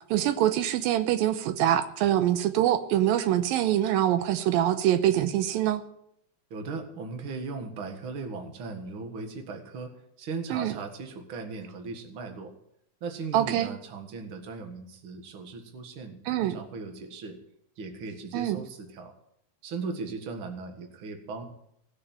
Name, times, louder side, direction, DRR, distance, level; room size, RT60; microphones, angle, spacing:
voice 1, 0.0-5.8 10.5-10.7 13.3-13.7 16.3-16.6 18.3-18.6, right 12 dB, 85° right, 10 dB, 2.5 m, -24 dB
voice 2, 6.5-12.5 13.0-17.4 17.8-19.1 19.6-21.5, right 4 dB, 45° right, 5 dB, 2.0 m, -38 dB
18.5 x 6.6 x 9.1 m, 0.74 s
omnidirectional pair, 4.1 m